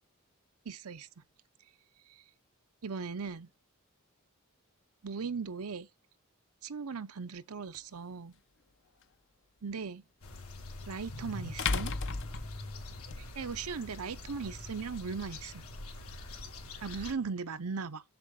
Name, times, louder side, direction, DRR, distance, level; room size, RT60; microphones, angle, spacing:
voice 1, 0.6-1.1 2.1-2.2 2.8-3.5 5.0-5.9 6.6-8.4 9.6-10.0 10.9-11.9 13.2-15.6 16.8-18.0, right 5 dB, 85° right, 0.7 m, -38 dB
sound 1, 7.7-7.8 10.4-10.5 11.6-13.2, left 4 dB, 60° left, 0.7 m, -33 dB
sound 2, 10.2-17.1, left 2 dB, 80° left, 2.5 m, -44 dB
7.3 x 6.9 x 3.7 m
head